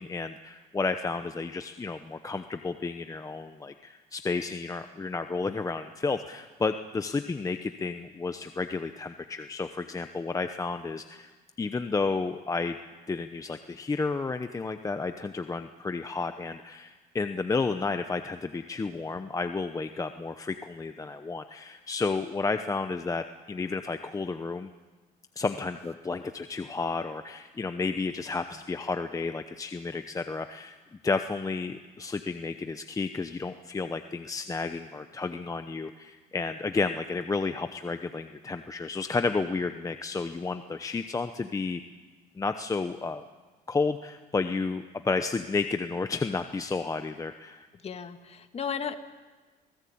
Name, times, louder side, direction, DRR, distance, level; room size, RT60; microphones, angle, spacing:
voice 1, 0.0-11.3 11.6-12.8 13.1-24.7 25.4-30.8 31.0-41.8 42.3-43.2 43.7-47.7, left 4 dB, 20° left, 8 dB, 0.9 m, -31 dB
voice 2, 47.8-48.9, left 7 dB, 40° left, 8 dB, 1.9 m, -34 dB
27.0 x 18.5 x 8.7 m, 1.3 s
cardioid pair, 110°, 17 cm